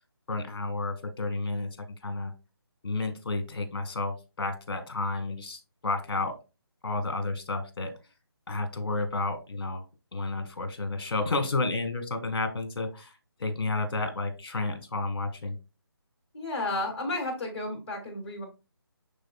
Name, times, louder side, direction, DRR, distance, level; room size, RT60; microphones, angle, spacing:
voice 1, 0.3-1.7 2.0-2.3 2.8-6.3 6.8-7.9 8.5-9.8 10.1-13.1 13.4-15.5, left 3 dB, 60° left, 8 dB, 1.6 m, -31 dB
voice 2, 16.3-18.4, left 2 dB, 25° left, 1 dB, 2.4 m, -32 dB
11.0 x 3.7 x 2.4 m, 0.29 s
figure-of-eight pair, 160°, 14 cm